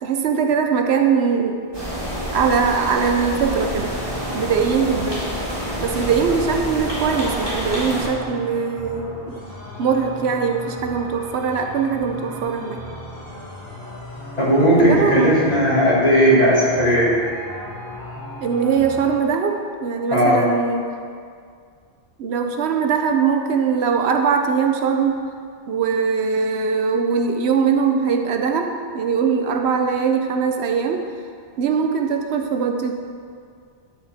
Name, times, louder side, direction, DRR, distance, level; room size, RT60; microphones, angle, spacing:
voice 1, 0.0-1.6 2.3-3.9 4.3-5.2 5.8-9.4 9.8-12.8 14.8-15.3 18.4-20.9 22.2-25.2 25.7-31.1 31.6-33.0, right 6 dB, 80° right, 4 dB, 0.9 m, -21 dB
sound 1, 1.7-8.1, equal, 25° right, 2.0 m, -28 dB
sound 2, 3.5-19.1, equal, 20° left, 2.1 m, -37 dB
voice 2, 14.4-17.1 20.1-20.4, equal, 40° left, -9 dB, 2.7 m, -16 dB
11.5 x 6.1 x 3.5 m, 2.2 s
omnidirectional pair, 1.1 m